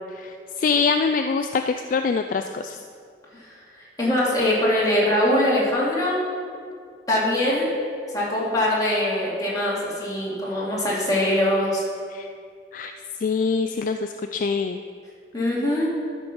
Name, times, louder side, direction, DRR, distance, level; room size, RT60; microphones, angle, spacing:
voice 1, 0.1-2.8 12.1-12.3 12.7-12.9 13.2-14.8, left 5 dB, 50° left, 7 dB, 0.3 m, -24 dB
voice 2, 4.0-6.2 7.1-7.7 8.1-11.8 15.3-15.9, left 1 dB, 20° left, -7 dB, 2.6 m, -22 dB
12.0 x 5.3 x 6.0 m, 2.2 s
head